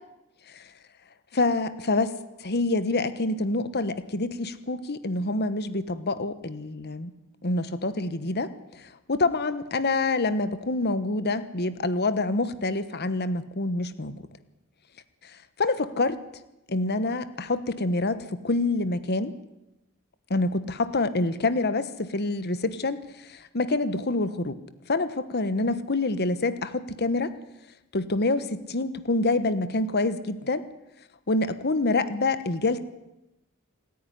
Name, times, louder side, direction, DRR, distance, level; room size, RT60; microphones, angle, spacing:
voice 1, 1.3-2.1 2.4-7.1 7.4-8.5 9.1-14.2 15.6-16.2 16.7-19.3 20.3-24.6 24.9-27.3 27.9-30.6 31.3-32.8, left 2 dB, 50° left, 13 dB, 1.2 m, -26 dB
27.5 x 10.0 x 10.0 m, 0.94 s
head